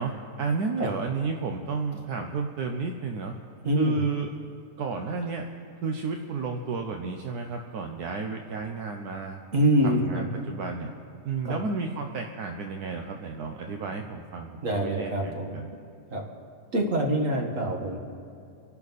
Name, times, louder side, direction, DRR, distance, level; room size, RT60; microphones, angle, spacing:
voice 1, 0.0-3.3 3.8-4.3 4.8-5.5 5.8-9.4 9.8-10.9 11.2-15.7, right 4 dB, 80° right, 3 dB, 1.4 m, -32 dB
voice 2, 3.6-4.0 9.5-10.2 11.4-11.6 14.6-15.6 16.1-16.2 16.7-18.0, right 1 dB, 55° right, 1 dB, 2.1 m, -25 dB
27.0 x 11.5 x 4.1 m, 2.6 s
omnidirectional pair, 1.6 m